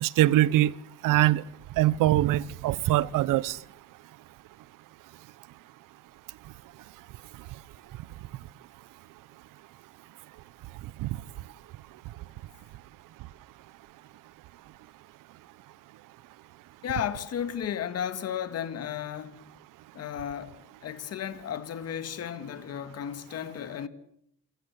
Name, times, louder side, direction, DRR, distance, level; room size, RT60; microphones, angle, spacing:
voice 1, 0.0-0.7 1.0-1.4 1.8-3.6 11.0-11.2, right 15 dB, 80° right, 0.9 m, -23 dB
voice 2, 16.8-19.4 19.9-23.9, left 9 dB, 50° left, 1.9 m, -34 dB
27.5 x 17.5 x 8.3 m
cardioid pair, 135°, 32 cm